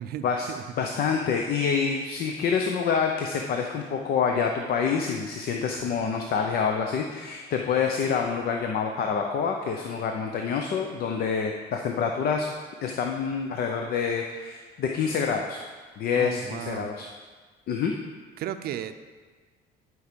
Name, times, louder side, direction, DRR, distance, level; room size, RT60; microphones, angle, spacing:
voice 1, 0.0-0.6 16.1-16.9 18.4-18.9, right 10 dB, 65° right, 10 dB, 0.6 m, -35 dB
voice 2, 0.8-12.5 12.8-15.6 16.0-17.1 17.7-17.9, left 6 dB, 65° left, 2 dB, 0.7 m, -27 dB
11.0 x 4.8 x 5.2 m, 1.4 s
cardioid pair, 110°, 17 cm